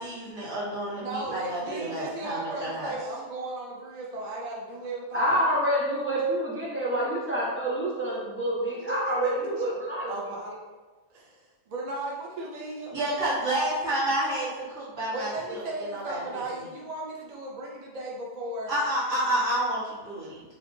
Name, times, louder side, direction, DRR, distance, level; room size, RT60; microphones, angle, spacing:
voice 1, 0.0-2.9 12.9-15.6 15.9-16.4 18.7-20.4, right 1 dB, 75° right, -10 dB, 1.9 m, -29 dB
voice 2, 1.0-5.5 8.8-9.7 10.1-10.5 11.1-12.9 15.1-18.7, right 1 dB, 45° right, -3 dB, 0.5 m, -36 dB
voice 3, 5.1-10.1, right 1 dB, 10° left, -6 dB, 0.7 m, -27 dB
5.1 x 2.9 x 2.6 m, 1.2 s
omnidirectional pair, 1.3 m